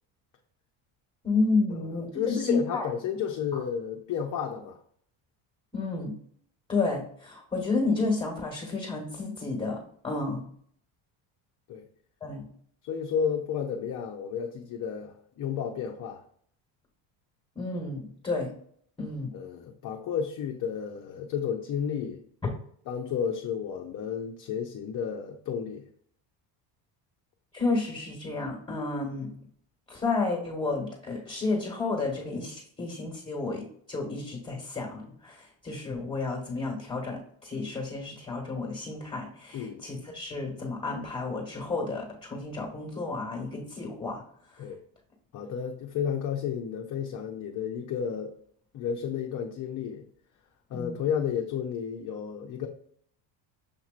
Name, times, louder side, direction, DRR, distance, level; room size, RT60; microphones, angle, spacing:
voice 1, 1.2-2.8 5.7-6.1 6.7-10.4 12.2-12.4 17.5-18.5 19.0-19.3 22.4-22.5 27.5-29.3 29.9-44.2 50.7-51.1, left 3 dB, 15° left, 0 dB, 1.3 m, -31 dB
voice 2, 2.1-4.8 11.7-11.8 12.9-16.2 19.3-22.2 22.9-25.8 39.5-39.8 44.6-44.8 45.3-48.4 48.7-50.0 50.7-52.7, left 7 dB, 45° left, 1 dB, 0.6 m, -32 dB
6.6 x 2.9 x 2.5 m, 0.63 s
supercardioid pair, 100°, 46 cm